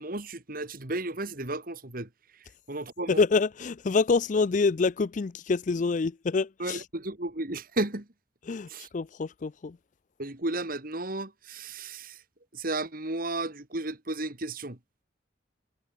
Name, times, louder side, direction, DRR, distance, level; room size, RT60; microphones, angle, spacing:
voice 1, 0.0-2.1 2.7-3.2 6.6-8.1 8.7-8.9 10.2-12.2 12.5-14.8, right 2 dB, 50° right, 2.5 m, -33 dB
voice 2, 3.1-6.9 8.5-9.8, left 4 dB, 40° left, 0.4 m, -26 dB
head